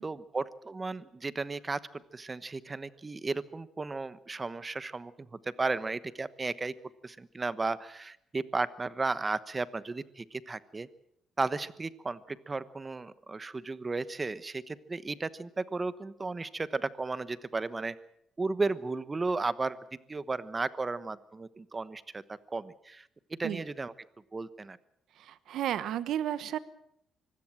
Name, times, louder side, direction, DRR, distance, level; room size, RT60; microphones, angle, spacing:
voice 1, 0.0-6.7 7.0-10.9 11.4-17.9 18.4-19.8 20.1-22.2 22.5-23.1 23.4-23.9 24.3-24.8, right 3 dB, 25° right, 15 dB, 1.1 m, -34 dB
voice 2, 25.2-26.6, right 11 dB, 75° right, 15 dB, 1.1 m, -32 dB
24.5 x 16.5 x 7.5 m, 0.77 s
cardioid pair, 90°, 0 cm